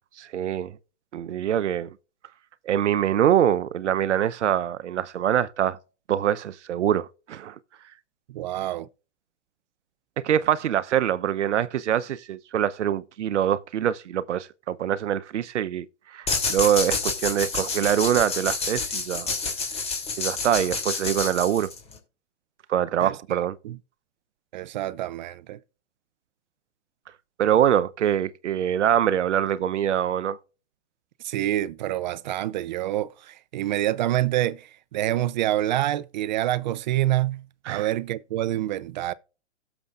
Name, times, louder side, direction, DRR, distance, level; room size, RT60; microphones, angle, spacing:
voice 1, 0.2-0.7 1.1-1.9 2.7-5.8 6.1-7.5 10.2-19.3 20.2-21.7 22.7-23.6 27.4-30.4 37.7-37.9, right 10 dB, 85° right, 0.8 m, -24 dB
voice 2, 8.3-8.9 23.0-23.4 23.6-23.8 24.5-25.6 31.2-39.1, right 14 dB, 40° right, 0.5 m, -27 dB
sound 1, 16.3-22.0, left 4 dB, 15° left, 3.0 m, -29 dB
17.0 x 7.0 x 2.5 m
hypercardioid pair, 145°, 35 cm